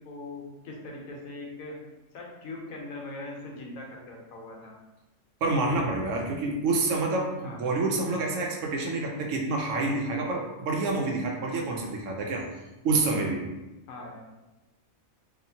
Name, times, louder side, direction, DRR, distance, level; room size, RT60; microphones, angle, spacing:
voice 1, 0.0-1.8 2.1-4.7 7.3-7.6 13.9-14.3, left 2 dB, 75° left, -1 dB, 1.1 m, -41 dB
voice 2, 5.4-12.4 12.8-13.4, right 3 dB, 70° right, 0 dB, 0.9 m, -28 dB
2.8 x 2.4 x 2.7 m, 1.0 s
omnidirectional pair, 1.4 m